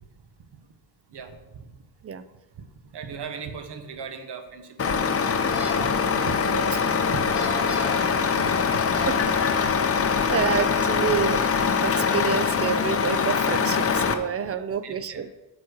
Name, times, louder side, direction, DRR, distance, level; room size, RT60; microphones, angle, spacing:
voice 1, 1.1-1.6 2.6-2.7 2.9-5.1 5.8-5.9 6.2-6.4 7.1-7.2 7.6-8.8 9.6-9.7 10.1-10.3 14.5-15.2, right 6 dB, 80° right, 7 dB, 1.1 m, -38 dB
Truck, 4.8-14.1, left 6 dB, 35° left, 0.6 m, -23 dB
sound 1, 5.3-5.8 7.2-8.0 8.6-9.2, left 2 dB, 10° left, 2.2 m, -35 dB
voice 2, 6.4-6.8 9.0-9.7 10.3-11.4 11.8-15.3, right 7 dB, 40° right, 12 dB, 0.4 m, -28 dB
9.4 x 4.2 x 6.2 m, 1.1 s
wide cardioid pair, 145°, 40 cm